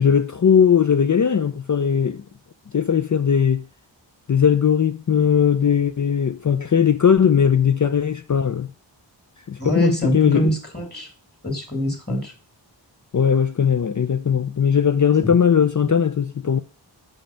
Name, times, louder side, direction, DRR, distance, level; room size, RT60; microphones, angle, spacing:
voice 1, 0.0-2.2 2.7-3.7 4.3-8.7 9.5-10.5 13.1-16.6, left 7 dB, 45° left, 0.5 m, -18 dB
voice 2, 9.6-11.1 11.4-12.3 15.2-15.3 15.8-15.9, equal, 20° left, 2.3 m, -24 dB
5.6 x 5.2 x 5.6 m
wide cardioid pair, 70°, 44 cm